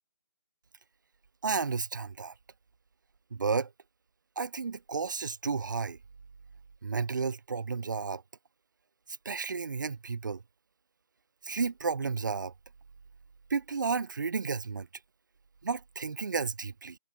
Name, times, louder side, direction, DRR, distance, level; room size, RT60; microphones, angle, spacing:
voice 1, 1.4-2.3 3.3-3.7 4.4-6.0 6.8-8.2 9.2-10.4 11.4-12.5 13.5-14.9 15.6-17.0, right 5 dB, 50° right, 1.0 m, -32 dB
hypercardioid pair, 175°, 13 cm